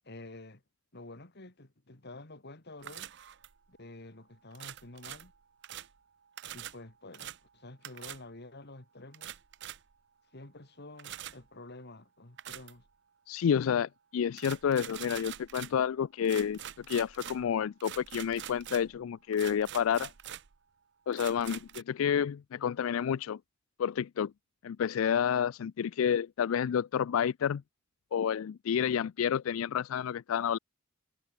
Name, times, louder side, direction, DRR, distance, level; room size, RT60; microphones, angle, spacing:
voice 1, 0.0-0.6 0.9-3.1 3.7-5.3 6.5-9.4 10.3-12.8, left 2 dB, 55° left, 2.5 m, -49 dB
sound 1, 2.8-3.7 4.5-6.0 6.4-6.8 7.1-7.4 7.8-8.2 9.1-9.9 11.0-11.4 12.4-12.9 14.4-15.8 16.2-19.0 19.3-20.6 21.1-21.8, right 11 dB, 60° right, 0.7 m, -45 dB
voice 2, 13.3-20.1 21.1-23.4 23.8-24.3 24.6-27.6 28.1-30.6, left 8 dB, 80° left, 0.4 m, -30 dB
head